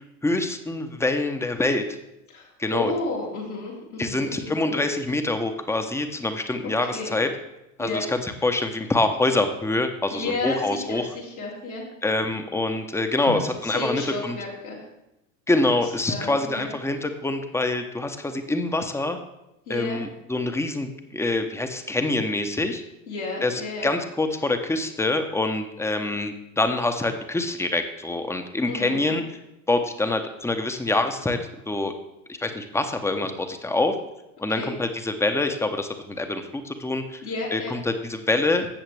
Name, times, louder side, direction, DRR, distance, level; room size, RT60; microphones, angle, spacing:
voice 1, 0.2-1.8 2.6-2.9 4.0-7.3 7.8-11.0 12.0-14.4 15.5-19.2 19.7-22.8 23.4-29.2 29.7-31.4 31.7-31.9 32.4-33.9 34.4-37.2 37.5-38.7, left 2 dB, 5° left, 7 dB, 0.9 m, -25 dB
voice 2, 2.3-4.9 6.9-7.2 7.8-8.0 10.1-11.8 13.2-14.8 16.1-16.7 19.7-20.0 23.1-23.9 28.7-29.2 34.6-34.7 37.2-37.7, left 3 dB, 90° left, -6 dB, 3.6 m, -32 dB
13.0 x 8.0 x 3.4 m, 0.91 s
figure-of-eight pair, 80°, 42 cm